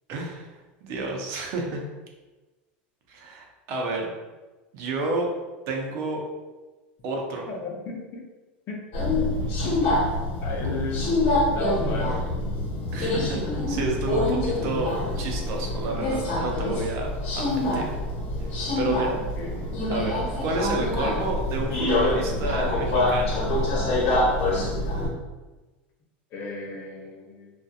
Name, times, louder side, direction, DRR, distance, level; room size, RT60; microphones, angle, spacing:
voice 1, 0.1-0.5 0.8-1.8 3.1-4.1 4.7-5.3 5.7-6.2 7.0-7.5 10.6-10.7 12.9-17.1 17.3-17.9 18.8-19.2 19.9-23.4, right 2 dB, 55° right, 1 dB, 0.6 m, -30 dB
voice 2, 7.5-8.2 8.7-8.8 9.6-9.9 10.4-11.1 11.5-12.2 19.1-19.8 26.3-27.5, left 2 dB, 45° left, 0 dB, 0.6 m, -34 dB
Subway metro underground, 8.9-25.1, left 1 dB, 60° left, 1.0 m, -25 dB
2.6 x 2.3 x 2.4 m, 1.2 s
supercardioid pair, 110°, 6 cm